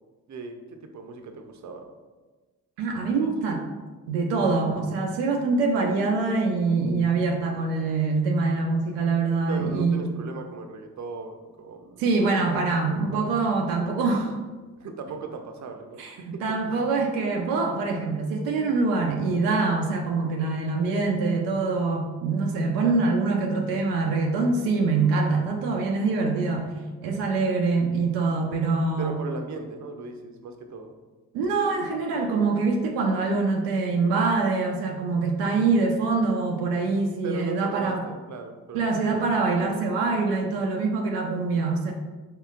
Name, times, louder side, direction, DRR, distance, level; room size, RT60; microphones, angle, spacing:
voice 1, 0.8-1.9 9.5-13.3 14.8-16.0 16.3-16.4 22.8-23.1 29.0-30.9 37.2-39.2, right 3 dB, 45° right, 5 dB, 0.6 m, -37 dB
voice 2, 2.8-3.6 4.1-10.1 12.0-14.4 16.0-26.7 27.0-29.2 31.3-38.0 38.7-41.9, right 3 dB, 85° right, 1 dB, 0.5 m, -24 dB
4.5 x 3.1 x 2.4 m, 1.3 s
hypercardioid pair, 40°, 41 cm